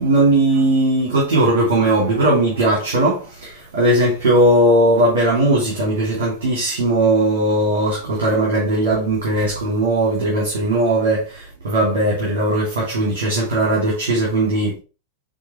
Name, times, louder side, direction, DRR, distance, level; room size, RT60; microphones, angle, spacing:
voice 1, 0.0-14.7, right 1 dB, 60° right, 2.9 m, -18 dB
9.4 x 3.3 x 3.3 m
figure-of-eight pair, 90°, 0 cm